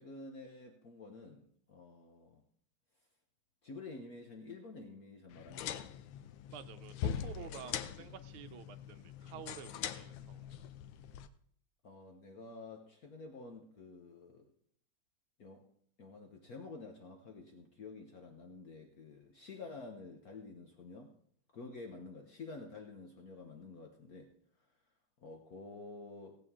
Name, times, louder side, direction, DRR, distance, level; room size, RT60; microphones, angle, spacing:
voice 1, 0.0-2.4 3.6-5.9 11.8-14.5 15.4-15.6 16.0-21.1 21.5-24.3 25.2-26.4, left 3 dB, 50° left, 3 dB, 1.3 m, -50 dB
sound 1, 5.3-11.3, left 9 dB, 90° left, 1.5 m, -42 dB
voice 2, 6.5-10.6, right 10 dB, 85° right, 11 dB, 1.5 m, -50 dB
17.0 x 8.4 x 3.7 m, 0.62 s
omnidirectional pair, 2.3 m